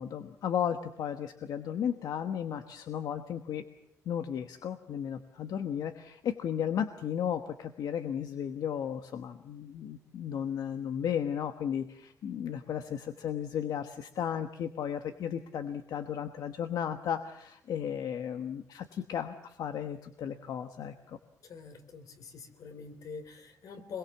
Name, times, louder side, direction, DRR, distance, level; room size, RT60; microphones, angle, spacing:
voice 1, 0.0-3.6 4.0-21.2, left 9 dB, 90° left, 8 dB, 1.2 m, -34 dB
voice 2, 21.4-24.0, left 5 dB, 70° left, 9 dB, 3.4 m, -45 dB
27.0 x 22.0 x 7.2 m, 0.77 s
wide cardioid pair, 160°, 6 cm